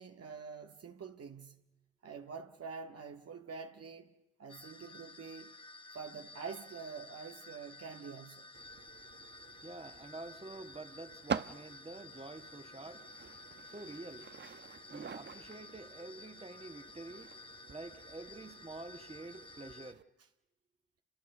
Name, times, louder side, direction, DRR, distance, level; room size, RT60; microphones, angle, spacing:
voice 1, 0.0-1.6 2.0-5.5 5.9-8.5, right 5 dB, 50° right, 1.9 m, -46 dB
sound 1, 4.5-19.9, left 3 dB, 15° left, 1.4 m, -53 dB
sound 2, 8.5-20.0, right 6 dB, 35° right, 1.0 m, -47 dB
voice 2, 9.6-13.1 13.7-14.3 14.9-17.3 17.7-20.0, right 2 dB, 20° right, 2.2 m, -48 dB
29.5 x 27.0 x 6.8 m
cardioid pair, 70°, 30 cm